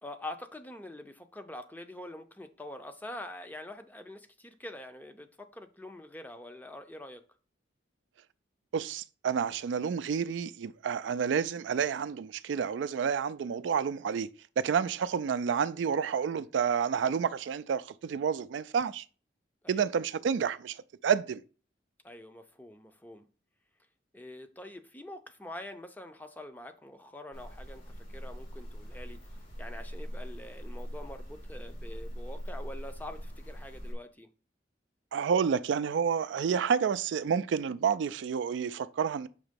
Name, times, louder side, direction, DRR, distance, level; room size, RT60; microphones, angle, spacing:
voice 1, 0.0-7.2 19.6-19.8 22.0-23.3 24.1-34.3, left 1 dB, 10° left, 0.5 m, -45 dB
voice 2, 8.7-14.3 14.6-19.0 19.7-21.4 35.1-39.3, right 7 dB, 80° right, 0.3 m, -29 dB
sound 1, 27.3-33.9, equal, 80° left, 2.8 m, -41 dB
6.4 x 2.9 x 5.1 m
head